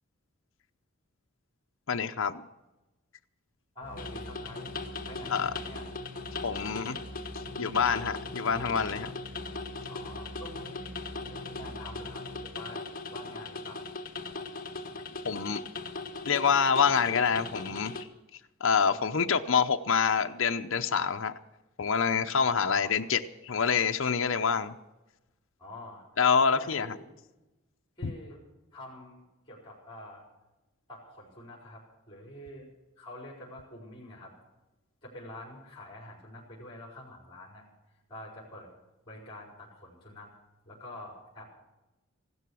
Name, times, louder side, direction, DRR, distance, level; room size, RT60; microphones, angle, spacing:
voice 1, 1.9-2.4 5.3-5.5 6.4-7.0 7.6-9.1 15.2-15.6 16.3-18.1 18.6-21.4 21.8-24.7 26.2-27.0 28.0-28.1, left 6 dB, 60° left, 6 dB, 0.7 m, -26 dB
voice 2, 3.7-4.7 5.1-5.9 9.9-12.8 13.1-13.9 18.9-19.2 22.4-23.0 25.6-26.0 26.5-27.2 28.0-28.4 28.7-30.3 30.9-32.7 33.0-34.3 35.0-37.6 38.1-38.7 39.1-40.3 40.6-41.4, left 1 dB, 25° left, -4 dB, 4.7 m, -46 dB
sound 1, 3.8-12.4, equal, 10° right, 4.7 m, -46 dB
sound 2, 4.0-18.0, left 3 dB, 40° left, 1.4 m, -39 dB
16.0 x 12.5 x 6.3 m, 1.0 s
head